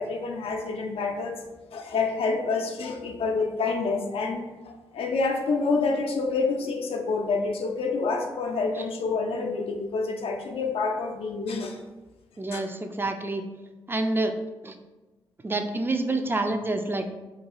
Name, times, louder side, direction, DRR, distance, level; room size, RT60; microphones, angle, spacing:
voice 1, 0.0-1.4 1.7-11.8 12.5-12.6, left 4 dB, 75° left, 3 dB, 0.4 m, -28 dB
voice 2, 12.4-13.4 13.9-14.3 14.6-14.7 15.4-17.1, right 2 dB, 20° right, 7 dB, 0.3 m, -27 dB
2.7 x 2.3 x 2.9 m, 1.1 s
supercardioid pair, 50°, 10 cm